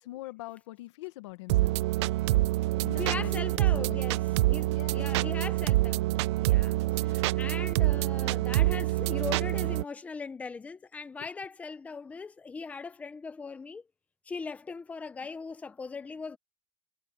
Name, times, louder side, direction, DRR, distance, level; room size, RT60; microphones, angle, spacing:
voice 1, 0.0-1.8 2.8-4.0 4.7-5.4 7.0-7.4 11.2-11.3, left 19 dB, 70° left, 1.6 m, -43 dB
sound 1, 1.5-9.8, right 17 dB, 65° right, 0.6 m, -26 dB
voice 2, 3.0-6.1 6.4-13.8 14.3-16.4, left 4 dB, 10° left, 0.8 m, -40 dB
supercardioid pair, 165°, 16 cm